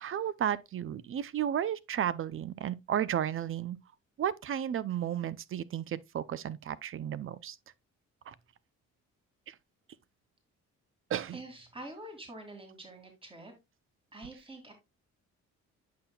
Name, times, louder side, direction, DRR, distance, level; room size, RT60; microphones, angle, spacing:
voice 1, 0.0-3.8 4.2-7.6 8.3-8.4 9.5-9.6 11.1-11.4, right 10 dB, 45° right, 0.5 m, -33 dB
voice 2, 11.3-13.5 14.1-14.7, right 1 dB, 20° right, 2.3 m, -46 dB
8.5 x 5.8 x 2.3 m
cardioid pair, 90°, 30 cm